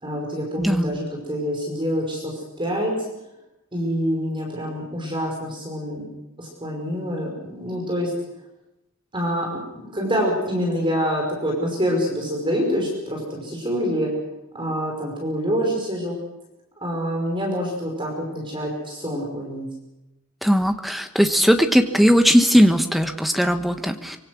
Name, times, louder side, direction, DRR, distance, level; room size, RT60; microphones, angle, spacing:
voice 1, 0.0-2.9 3.7-6.1 6.4-8.1 9.1-14.1 14.5-16.2 16.8-19.7, equal, 25° right, 0 dB, 5.4 m, -26 dB
voice 2, 0.6-1.0 20.4-24.2, equal, ahead, 6 dB, 1.3 m, -18 dB
24.5 x 24.0 x 6.3 m, 0.93 s
head